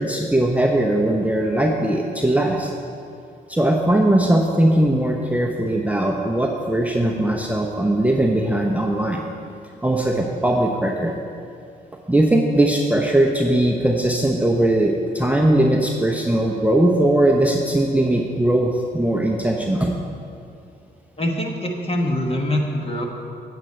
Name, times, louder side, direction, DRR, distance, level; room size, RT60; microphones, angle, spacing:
voice 1, 0.0-2.7 3.5-9.2 9.8-11.2 12.1-19.9, right 1 dB, 5° right, 0 dB, 0.8 m, -19 dB
voice 2, 21.2-23.1, left 1 dB, 25° left, 1 dB, 1.5 m, -24 dB
9.0 x 7.9 x 4.4 m, 2.5 s
hypercardioid pair, 50°, 21 cm